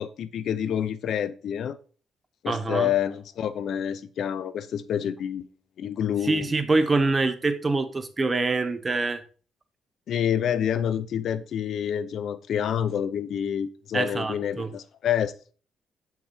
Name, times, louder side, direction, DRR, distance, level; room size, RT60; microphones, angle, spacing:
voice 1, 0.0-1.8 2.4-5.5 5.8-6.5 10.1-15.5, left 9 dB, 65° left, 0.7 m, -28 dB
voice 2, 2.5-2.9 6.2-9.2 13.9-14.7, right 3 dB, 25° right, 1.1 m, -25 dB
7.8 x 5.9 x 4.4 m
cardioid pair, 90°, 0 cm